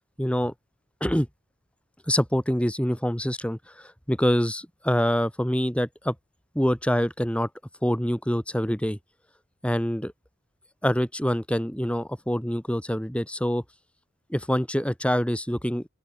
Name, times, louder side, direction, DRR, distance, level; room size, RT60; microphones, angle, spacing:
voice 1, 0.2-0.5 1.0-1.3 2.1-6.1 6.5-7.5 7.8-9.0 9.6-10.1 10.8-13.6 14.3-15.9, equal, 5° left, 6.6 m, -25 dB
open air
head